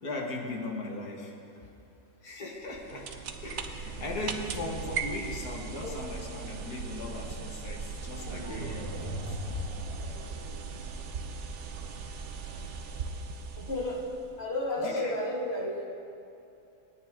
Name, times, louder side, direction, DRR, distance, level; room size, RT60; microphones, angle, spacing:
voice 1, 0.0-1.3 1.6-1.7 2.2-9.4 14.8-15.1, left 2 dB, 65° left, 0 dB, 2.3 m, -38 dB
sound 1, 2.6-14.4, right 5 dB, 55° right, 1.0 m, -39 dB
sound 2, 8.1-11.1, left 1 dB, 20° right, 2.5 m, -38 dB
voice 2, 13.6-14.0 14.4-15.9, left 1 dB, 40° left, -2 dB, 2.2 m, -32 dB
28.0 x 9.5 x 3.7 m, 2.7 s
omnidirectional pair, 1.7 m